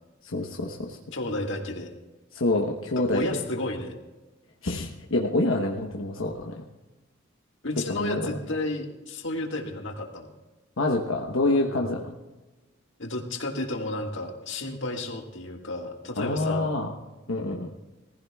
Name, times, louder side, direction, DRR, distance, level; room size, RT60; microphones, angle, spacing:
voice 1, 0.2-1.0 2.3-3.3 4.6-6.7 7.9-8.3 10.8-12.1 16.2-16.9 17.3-17.7, left 2 dB, 85° left, 0 dB, 1.1 m, -27 dB
voice 2, 1.1-1.9 3.0-4.0 7.6-10.3 11.7-11.9 13.0-16.7, left 2 dB, 65° left, 2 dB, 1.8 m, -32 dB
19.0 x 15.5 x 2.3 m, 1.2 s
head